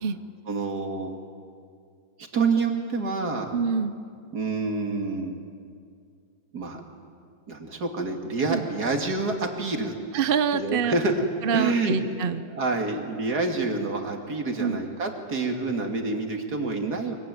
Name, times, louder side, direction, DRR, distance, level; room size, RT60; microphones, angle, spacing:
voice 1, 0.5-1.1 2.3-3.6 4.3-5.3 6.5-6.8 7.5-10.0 10.5-11.3 11.5-12.0 12.5-17.2, right 3 dB, 65° right, 3 dB, 3.0 m, -27 dB
voice 2, 3.5-3.9 8.5-8.6 10.1-10.9 11.4-12.4 14.6-14.8, right 6 dB, 45° right, 11 dB, 0.8 m, -25 dB
24.0 x 23.5 x 9.4 m, 2.3 s
omnidirectional pair, 1.8 m